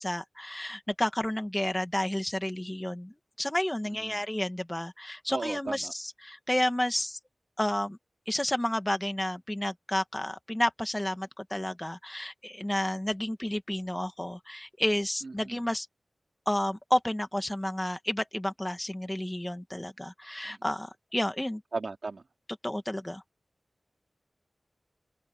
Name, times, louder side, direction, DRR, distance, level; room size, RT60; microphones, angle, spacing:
voice 1, 0.0-7.2 7.6-8.0 8.3-15.9 16.5-21.6 22.6-23.2, left 1 dB, 15° left, 2.1 m, -31 dB
voice 2, 3.9-4.2 5.3-5.9 15.2-15.6 20.4-20.6 21.7-22.2, right 3 dB, 65° right, 3.7 m, -36 dB
open air
wide cardioid pair, 60°, 0 cm